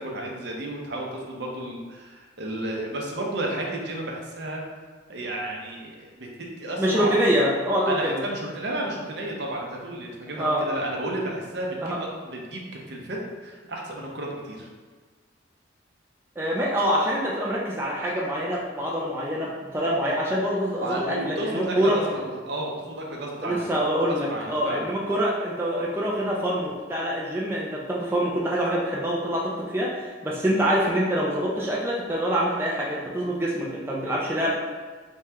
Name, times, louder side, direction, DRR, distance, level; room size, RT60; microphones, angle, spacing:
voice 1, 0.0-4.6 5.1-7.1 7.9-14.7 20.8-23.7 24.0-24.9, right 1 dB, 60° right, -1 dB, 0.6 m, -32 dB
voice 2, 6.8-8.2 10.4-10.6 11.8-12.0 16.4-22.0 23.4-34.5, equal, 10° right, -4 dB, 0.4 m, -25 dB
3.3 x 3.1 x 3.4 m, 1.5 s
head